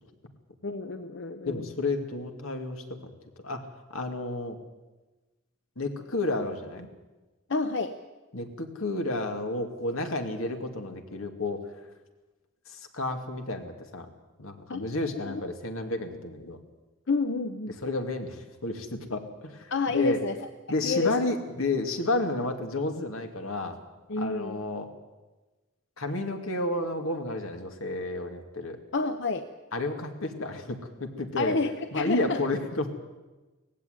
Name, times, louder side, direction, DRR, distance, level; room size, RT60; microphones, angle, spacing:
voice 1, 0.6-1.7 7.5-8.0 14.7-14.9 15.3-15.4 17.1-17.8 19.7-20.3 20.8-21.2 24.1-24.6 28.9-29.5 31.4-32.4, left 4 dB, 60° left, 8 dB, 0.8 m, -29 dB
voice 2, 1.4-2.8 3.4-3.6 3.9-4.6 5.8-6.9 8.3-11.6 12.7-14.1 14.4-16.6 17.8-20.2 20.7-23.8 24.2-24.9 26.0-28.8 29.7-31.6 31.9-33.0, left 2 dB, 85° left, 5 dB, 2.4 m, -31 dB
18.5 x 15.5 x 9.4 m, 1.2 s
head